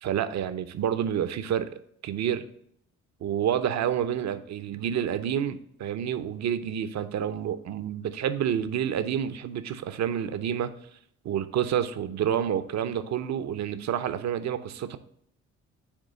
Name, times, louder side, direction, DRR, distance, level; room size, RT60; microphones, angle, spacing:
voice 1, 0.0-1.7 2.0-2.4 3.2-10.7 11.2-15.0, right 9 dB, 60° right, 11 dB, 0.7 m, -29 dB
8.3 x 3.1 x 6.2 m, 0.69 s
cardioid pair, 90°, 30 cm